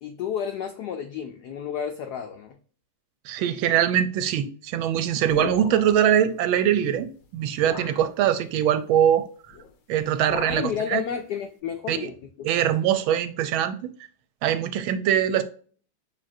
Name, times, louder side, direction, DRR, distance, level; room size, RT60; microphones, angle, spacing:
voice 1, 0.0-2.6 10.5-12.5, left 7 dB, 90° left, 0.9 m, -31 dB
voice 2, 3.2-9.6 9.9-11.0 11.9-12.1 12.4-13.9 14.4-15.4, right 10 dB, 75° right, 1.3 m, -23 dB
sound 1, 5.3-6.1 7.0-7.1 7.6-8.1 9.5-9.7 10.0-10.8, left 6 dB, 70° left, 1.4 m, -37 dB
6.9 x 2.9 x 2.6 m
omnidirectional pair, 2.3 m